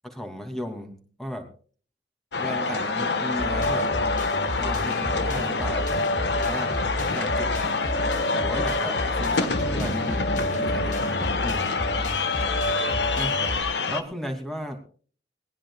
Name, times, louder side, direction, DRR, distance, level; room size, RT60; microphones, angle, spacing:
voice 1, 0.0-1.5 2.4-3.9 4.6-5.9 6.4-6.7 7.1-7.5 8.4-11.1 11.4-11.7 13.1-13.4 13.9-14.8, equal, ahead, 4 dB, 2.7 m, -35 dB
sound 1, 2.3-14.0, left 4 dB, 80° left, 1.5 m, -27 dB
sound 2, 3.4-13.6, equal, 45° left, 2.9 m, -29 dB
20.0 x 19.5 x 2.4 m, 0.43 s
head